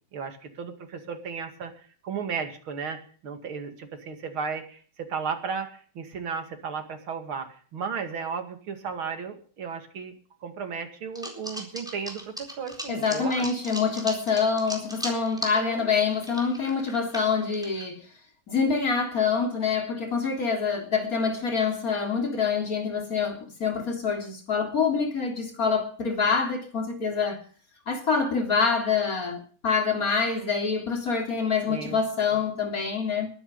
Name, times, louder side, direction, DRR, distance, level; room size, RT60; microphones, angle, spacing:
voice 1, 0.1-1.7 2.0-10.1 10.4-13.5 15.5-15.9 31.7-32.4, right 6 dB, 85° right, 3.1 m, -34 dB
sound 1, 11.1-15.6 15.9-17.9, equal, ahead, 3.9 m, -37 dB
voice 2, 12.9-18.0 18.5-27.4 27.9-33.3, left 5 dB, 45° left, 3.8 m, -26 dB
21.5 x 10.0 x 5.4 m
omnidirectional pair, 2.2 m